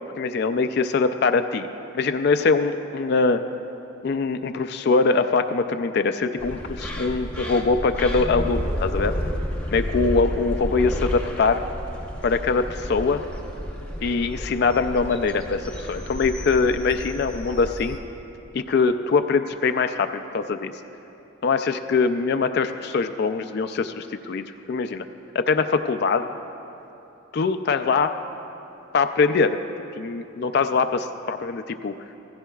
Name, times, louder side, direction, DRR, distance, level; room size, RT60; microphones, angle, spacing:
voice 1, 0.2-1.7 1.9-3.4 4.0-9.1 9.7-11.6 12.2-13.2 14.0-18.0 18.5-20.7 21.4-25.0 25.3-26.3 27.3-28.1 28.9-29.6 30.0-31.9, left 4 dB, 50° left, 9 dB, 0.3 m, -23 dB
sound 1, 6.4-18.0, equal, 5° left, 0.8 m, -31 dB
16.0 x 15.5 x 2.3 m, 3.0 s
head